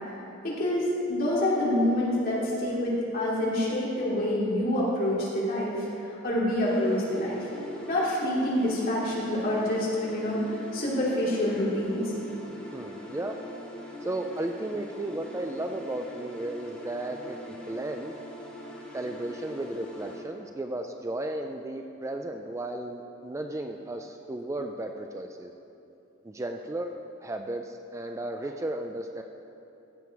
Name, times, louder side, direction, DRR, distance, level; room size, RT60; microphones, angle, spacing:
voice 1, 0.4-7.5 7.9-12.1, left 1 dB, 45° left, -6 dB, 2.9 m, -27 dB
sound 1, 6.6-20.2, equal, 5° left, 2.0 m, -43 dB
voice 2, 12.7-13.4 14.0-18.1 18.9-25.5 26.2-26.9 27.2-29.2, right 1 dB, 15° right, 4 dB, 0.3 m, -34 dB
15.0 x 7.2 x 4.8 m, 2.9 s
head